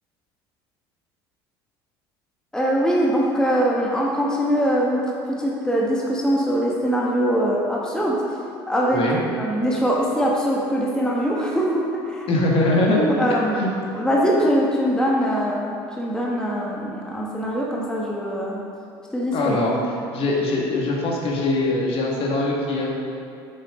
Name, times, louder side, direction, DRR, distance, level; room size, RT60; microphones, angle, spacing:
voice 1, 2.5-8.4 8.7-9.0 9.4-12.3 13.0-13.6 13.9-18.6 19.1-19.6, equal, 5° left, -4 dB, 1.3 m, -22 dB
voice 2, 12.3-13.0 13.6-13.7 19.3-19.7 20.1-22.9, left 2 dB, 50° left, -3 dB, 1.7 m, -22 dB
8.1 x 6.7 x 3.7 m, 2.6 s
hypercardioid pair, 80°, 12 cm